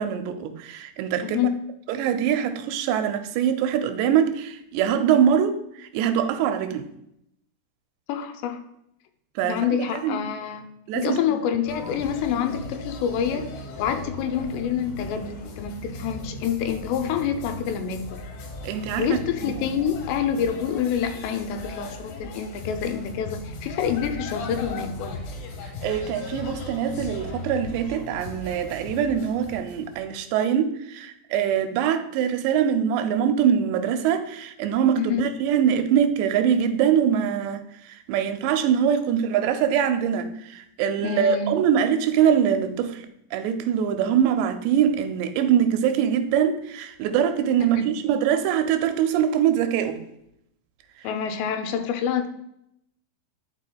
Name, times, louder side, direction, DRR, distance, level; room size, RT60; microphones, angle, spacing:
voice 1, 0.0-1.4 1.9-6.9 9.4-10.2 10.9-11.4 18.6-19.1 19.4-19.5 25.8-37.6 37.9-43.0 43.3-50.0, right 8 dB, 90° right, 2.8 m, -23 dB
voice 2, 1.2-1.6 8.1-8.6 9.4-10.7 10.9-13.5 13.8-18.2 19.0-25.2 35.0-35.3 41.0-41.5 47.6-47.9 51.0-52.3, left 8 dB, 90° left, 2.8 m, -27 dB
sound 1, 11.7-30.2, left 2 dB, 70° left, 2.5 m, -37 dB
12.0 x 4.5 x 2.2 m
omnidirectional pair, 4.8 m